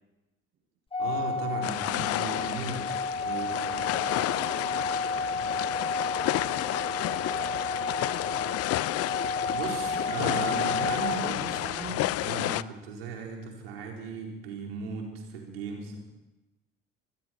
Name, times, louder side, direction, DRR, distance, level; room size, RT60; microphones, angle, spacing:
Organ, 0.9-11.8, left 3 dB, 20° left, 1.6 m, -32 dB
voice 1, 1.0-2.9 3.2-4.1 9.5-16.0, right 4 dB, 80° right, 0 dB, 4.5 m, -37 dB
sound 1, 1.6-12.6, left 16 dB, 55° left, 0.6 m, -31 dB
voice 2, 3.3-8.7, right 4 dB, 60° right, 2 dB, 7.8 m, -49 dB
28.5 x 21.0 x 4.5 m, 1.0 s
hypercardioid pair, 55°, 29 cm